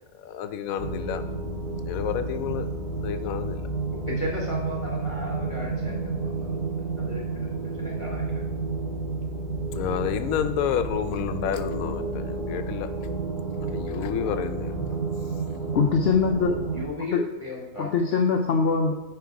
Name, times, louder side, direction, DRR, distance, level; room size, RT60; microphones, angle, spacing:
voice 1, 0.2-1.2 1.9-2.7 3.0-3.7 9.7-12.9 13.6-14.7, left 9 dB, 85° left, 9 dB, 1.0 m, -30 dB
sound 1, 0.8-16.8, right 3 dB, ahead, 1.7 m, -31 dB
voice 2, 4.1-6.6 7.0-8.3 16.7-17.9, left 2 dB, 25° left, -4 dB, 1.1 m, -36 dB
voice 3, 15.7-16.6 17.1-17.3 17.8-18.9, left 5 dB, 60° left, 3 dB, 0.7 m, -22 dB
9.9 x 3.3 x 4.7 m, 1.1 s
omnidirectional pair, 1.4 m